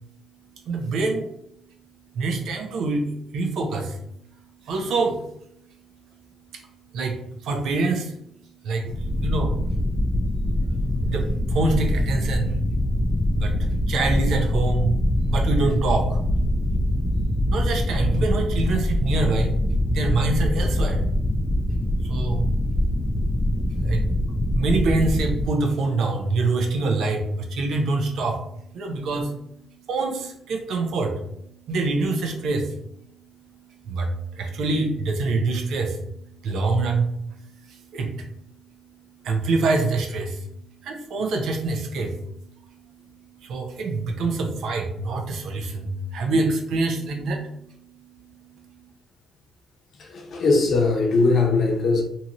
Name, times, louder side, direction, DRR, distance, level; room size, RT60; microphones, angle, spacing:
voice 1, 0.7-1.3 2.1-4.0 4.6-5.3 6.5-6.6 6.9-8.2 8.6-9.6 11.0-12.6 13.3-16.2 17.5-19.6 19.9-21.1 22.0-22.5 23.4-28.5 28.7-32.9 33.4-38.3 39.2-40.5 40.8-48.9, right 3 dB, 75° right, 0.6 m, -26 dB
sound 1, 8.9-25.5, left 1 dB, 25° left, 0.3 m, -23 dB
voice 2, 50.0-52.0, left 3 dB, 60° left, 0.7 m, -20 dB
2.8 x 2.5 x 2.9 m
cardioid pair, 90°, 0 cm